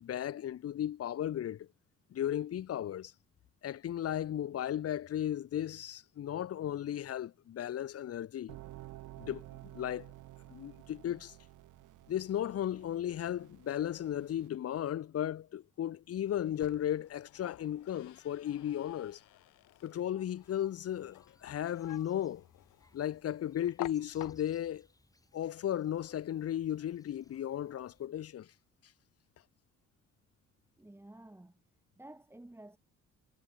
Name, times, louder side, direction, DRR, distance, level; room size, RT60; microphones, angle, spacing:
voice 1, 0.0-1.7 2.1-3.1 3.6-8.6 9.2-9.4 9.7-10.1 10.5-11.3 12.1-19.2 19.8-22.4 22.9-24.9 25.3-28.5, left 11 dB, 50° left, 0.8 m, -35 dB
sound 1, 8.5-14.5, right 15 dB, 85° right, 1.3 m, -52 dB
sound 2, 16.3-24.8, left 15 dB, 85° left, 1.9 m, -51 dB
sound 3, 20.4-28.1, left 2 dB, 10° left, 3.9 m, -66 dB
voice 2, 30.8-31.6 32.0-32.8, right 1 dB, 10° right, 1.9 m, -52 dB
cardioid pair, 90°, 30 cm